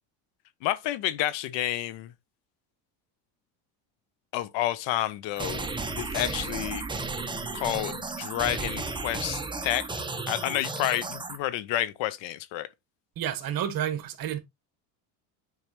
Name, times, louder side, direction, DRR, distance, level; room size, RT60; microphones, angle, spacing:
voice 1, 0.6-2.1 4.3-5.7 6.0-6.8 7.5-9.9 10.3-12.7, left 14 dB, 65° left, 1.0 m, -30 dB
sound 1, 5.4-11.4, right 3 dB, 10° right, 1.1 m, -34 dB
voice 2, 13.2-14.4, right 10 dB, 45° right, 1.5 m, -30 dB
9.3 x 4.8 x 3.0 m
cardioid pair, 125°, 48 cm